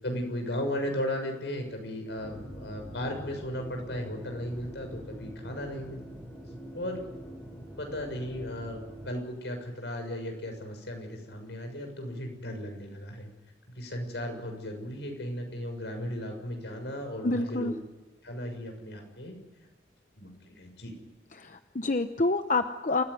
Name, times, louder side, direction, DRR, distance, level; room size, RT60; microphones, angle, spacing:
voice 1, 0.0-6.0 6.7-7.0 7.8-13.3 13.7-17.7 18.2-19.3 20.2-20.9, left 1 dB, 80° left, 4 dB, 6.7 m, -36 dB
sound 1, 2.2-9.1, equal, 10° left, 7.9 m, -44 dB
voice 2, 17.2-17.7 21.4-23.0, left 2 dB, 45° left, 8 dB, 0.9 m, -28 dB
27.5 x 16.0 x 9.9 m, 1.2 s
head